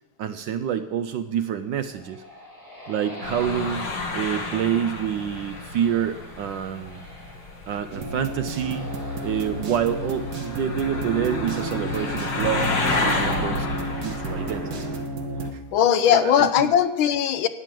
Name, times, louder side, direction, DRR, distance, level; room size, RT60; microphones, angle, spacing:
voice 1, 0.2-2.2 2.9-7.0 7.7-8.9 9.2-12.7 13.0-14.7 15.5-15.6 16.1-16.7, right 9 dB, 75° right, 10 dB, 1.1 m, -27 dB
sound 1, 1.6-15.1, left 1 dB, 10° left, 6.2 m, -44 dB
sound 2, 3.2-15.0, left 3 dB, 50° left, 2.1 m, -31 dB
sound 3, 7.9-15.5, right 1 dB, 50° right, 1.6 m, -31 dB
voice 2, 15.4-17.5, left 9 dB, 75° left, 12 dB, 1.4 m, -20 dB
12.5 x 9.2 x 7.5 m, 1.1 s
omnidirectional pair, 2.4 m